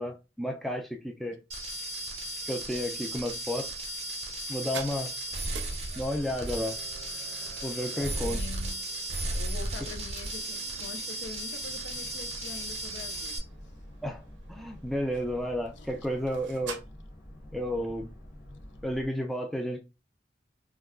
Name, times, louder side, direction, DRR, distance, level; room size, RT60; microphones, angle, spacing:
voice 1, 0.0-1.4 2.5-3.7 4.5-5.1 6.0-6.8 7.6-8.4 14.0-14.2 14.5-16.8 17.5-18.1 18.8-19.8, equal, ahead, 0.3 m, -32 dB
sound 1, 1.5-13.4, right 1 dB, 35° right, 0.6 m, -35 dB
sound 2, 1.7-16.8, right 6 dB, 90° right, 0.5 m, -49 dB
voice 2, 7.9-8.8 9.4-13.4 15.7-16.1, left 4 dB, 80° left, 0.5 m, -44 dB
Boat Water vehicle, 11.5-19.1, equal, 50° left, 0.8 m, -48 dB
2.3 x 2.1 x 3.5 m
head